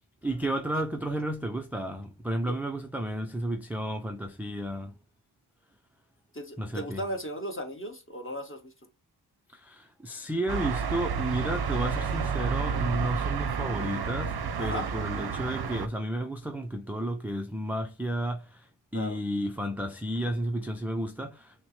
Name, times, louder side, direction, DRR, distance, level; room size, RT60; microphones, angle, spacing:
voice 1, 0.2-4.9 6.6-7.0 9.5-21.7, right 1 dB, 5° right, 0.4 m, -32 dB
voice 2, 6.3-8.7 14.6-14.9 18.9-19.2, equal, 25° left, 1.4 m, -36 dB
sound 1, 10.5-15.9, right 6 dB, 55° right, 0.6 m, -30 dB
6.2 x 2.1 x 3.1 m
wide cardioid pair, 105°, 48 cm